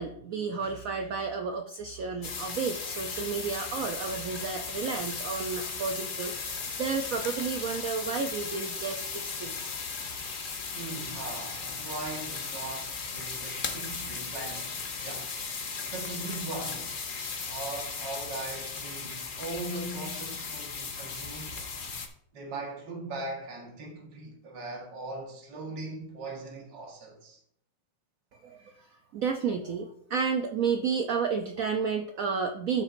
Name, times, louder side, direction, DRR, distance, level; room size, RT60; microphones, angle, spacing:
voice 1, 0.0-9.8 28.3-32.8, right 5 dB, 85° right, 0.7 m, -32 dB
sound 1, 2.2-22.1, left 5 dB, 80° left, 0.4 m, -36 dB
voice 2, 10.7-16.9 17.5-21.6 22.3-27.4, right 2 dB, 60° right, 2.2 m, -40 dB
13.0 x 5.7 x 2.6 m
omnidirectional pair, 2.2 m